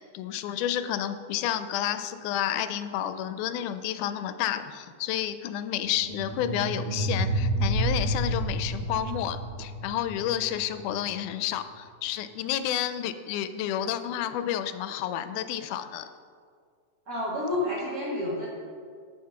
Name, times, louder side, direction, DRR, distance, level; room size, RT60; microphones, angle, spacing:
voice 1, 0.1-16.1, left 11 dB, 85° left, 11 dB, 2.0 m, -30 dB
sound 1, 5.9-11.0, right 1 dB, 60° right, 2.8 m, -30 dB
voice 2, 17.1-18.5, left 1 dB, 35° right, -10 dB, 2.0 m, -29 dB
7.9 x 6.5 x 5.9 m, 2.1 s
omnidirectional pair, 3.6 m